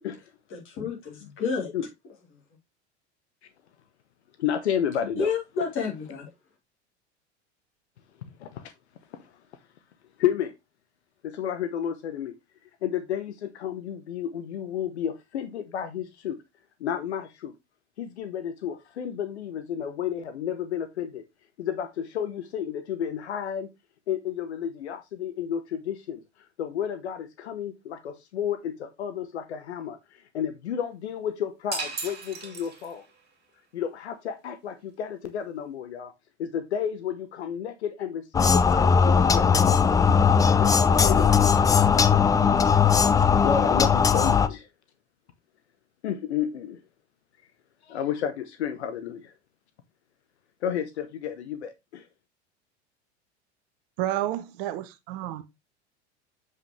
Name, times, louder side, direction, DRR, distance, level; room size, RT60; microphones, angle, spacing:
voice 1, 0.5-1.7 5.2-6.3, left 5 dB, 35° left, 3.6 m, -30 dB
voice 2, 4.4-5.3 8.4-8.7 9.2-9.3 10.2-10.5 11.2-12.3 12.8-16.4 16.8-17.5 18.0-21.2 21.6-23.7 24.1-26.2 26.6-33.0 33.7-36.1 36.4-39.5 40.5-41.9 42.4-42.6 43.4-44.7 46.0-46.8 47.8-49.3 50.6-52.1, left 9 dB, 70° left, 0.9 m, -31 dB
sound 1, 31.7-33.2, right 4 dB, 30° right, 2.6 m, -35 dB
sound 2, 38.3-44.5, left 6 dB, 10° left, 0.4 m, -19 dB
voice 3, 54.0-55.4, right 13 dB, 50° right, 0.9 m, -30 dB
7.4 x 5.4 x 3.2 m
figure-of-eight pair, 80°, 34 cm